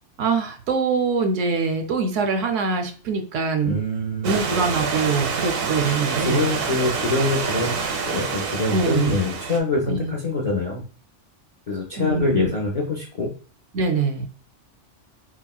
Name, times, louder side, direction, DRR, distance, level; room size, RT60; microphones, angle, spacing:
voice 1, 0.2-3.8 4.2-6.5 8.7-9.2 9.9-10.1 12.0-12.5 13.7-14.3, right 4 dB, 80° right, 6 dB, 1.0 m, -23 dB
voice 2, 3.6-4.4 6.2-7.8 8.1-10.8 11.7-13.3, left 2 dB, 55° left, -2 dB, 0.4 m, -24 dB
Stream / Liquid, 4.2-9.6, right 5 dB, 60° right, 0.7 m, -27 dB
4.1 x 2.0 x 2.2 m, 0.40 s
omnidirectional pair, 1.2 m